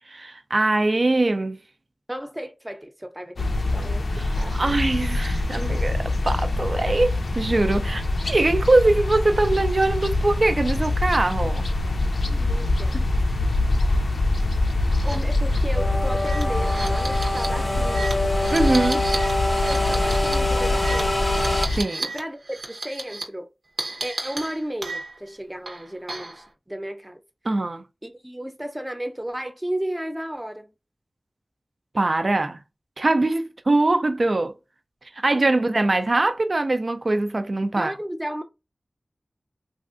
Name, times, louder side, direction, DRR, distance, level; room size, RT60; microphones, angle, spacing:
voice 1, 0.1-1.6 4.2-11.7 12.9-13.0 18.5-19.1 21.8-22.0 27.4-27.8 31.9-32.6 33.0-34.5 35.2-37.9, right 2 dB, 55° right, 0.4 m, -22 dB
voice 2, 2.1-4.1 4.4-4.7 12.2-13.0 14.6-18.3 19.7-21.3 22.0-23.5 24.0-27.2 28.0-30.7 35.3-35.6 37.8-38.4, right 1 dB, 15° right, 0.6 m, -34 dB
sound 1, 3.4-21.8, left 2 dB, 85° left, 0.4 m, -24 dB
sound 2, 14.9-15.2 15.5-15.6 16.1-22.2 22.5-23.2 23.8-25.3 25.7-26.4, right 2 dB, 75° right, 0.9 m, -34 dB
sound 3, 15.8-21.7, left 1 dB, 25° left, 0.5 m, -25 dB
3.2 x 2.5 x 2.5 m
wide cardioid pair, 45°, 0 cm